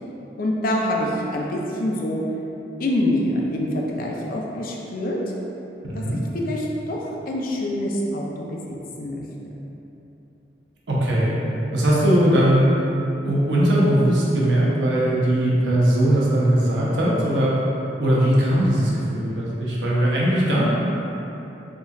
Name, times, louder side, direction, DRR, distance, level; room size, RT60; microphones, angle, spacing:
voice 1, 0.4-2.2 2.8-5.2 5.9-6.0 6.3-9.2, left 1 dB, 55° left, -1 dB, 0.4 m, -25 dB
voice 2, 10.9-11.3 11.7-12.7 13.2-17.5 18.0-20.7, right 1 dB, 90° right, -6 dB, 0.7 m, -19 dB
3.7 x 2.3 x 2.6 m, 3.0 s
head